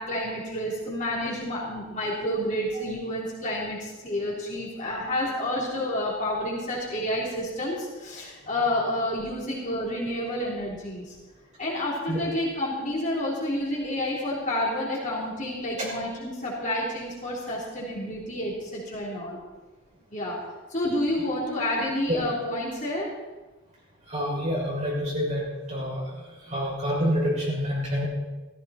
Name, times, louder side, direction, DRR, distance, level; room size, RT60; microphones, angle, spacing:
voice 1, 0.0-11.2 11.6-19.4 20.1-20.4 20.7-23.1, left 1 dB, 35° left, -5 dB, 3.4 m, -29 dB
voice 2, 24.1-25.4 25.7-28.1, equal, 35° right, -5 dB, 6.4 m, -28 dB
15.5 x 14.5 x 4.4 m, 1.2 s
head